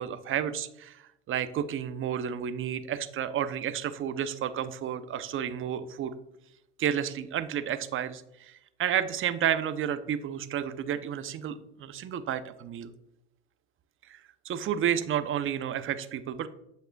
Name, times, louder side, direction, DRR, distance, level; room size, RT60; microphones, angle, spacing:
voice 1, 0.0-6.1 6.8-12.9 14.1-14.2 14.4-16.5, right 9 dB, 40° right, 12 dB, 0.7 m, -31 dB
8.0 x 6.6 x 2.3 m, 0.82 s
hypercardioid pair, 85°, 34 cm